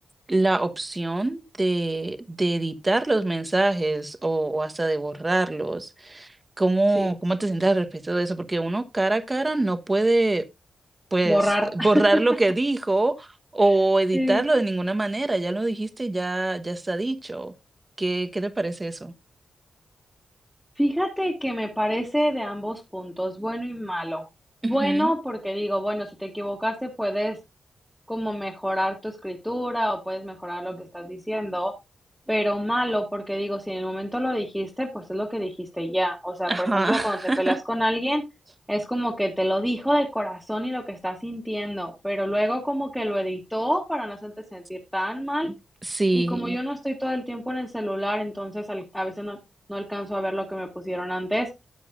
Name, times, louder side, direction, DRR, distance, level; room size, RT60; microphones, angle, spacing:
voice 1, 0.3-10.4 11.1-11.4 11.7-13.3 13.5-17.5 18.0-19.1 24.6-25.1 36.5-37.6 45.4-45.5 45.8-46.6, right 2 dB, 25° right, 1.0 m, -24 dB
voice 2, 11.3-12.0 14.1-14.4 20.8-24.2 24.6-27.4 28.1-31.7 32.3-38.2 38.7-45.5 46.1-49.4 49.7-51.5, equal, ahead, 1.9 m, -27 dB
12.5 x 8.3 x 2.5 m
cardioid pair, 75°, 0 cm